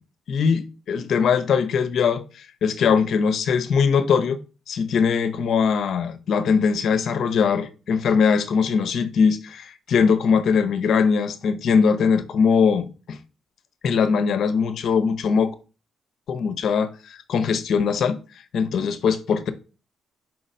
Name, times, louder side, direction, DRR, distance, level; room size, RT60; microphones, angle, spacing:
voice 1, 0.3-4.4 4.7-13.2 13.8-15.5 16.3-18.2 18.5-19.5, left 6 dB, 65° left, 0.7 m, -21 dB
4.6 x 3.9 x 5.3 m
cardioid pair, 90°, 0 cm